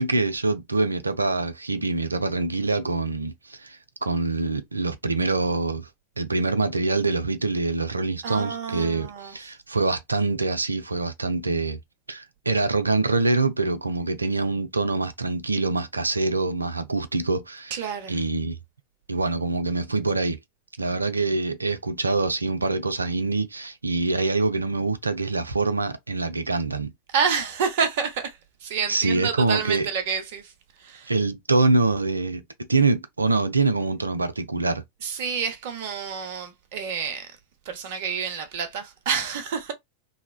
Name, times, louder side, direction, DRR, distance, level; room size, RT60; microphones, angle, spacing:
voice 1, 0.0-5.9 6.2-11.8 12.1-17.8 18.1-18.6 19.1-20.4 20.8-26.9 28.9-29.9 31.1-34.8, right 3 dB, 80° right, 0.4 m, -25 dB
voice 2, 8.2-9.5 17.7-18.2 27.1-30.5 30.8-31.1 35.0-37.4 37.6-39.7, right 6 dB, 50° right, 0.7 m, -29 dB
3.1 x 2.1 x 2.2 m
figure-of-eight pair, 90°, 0 cm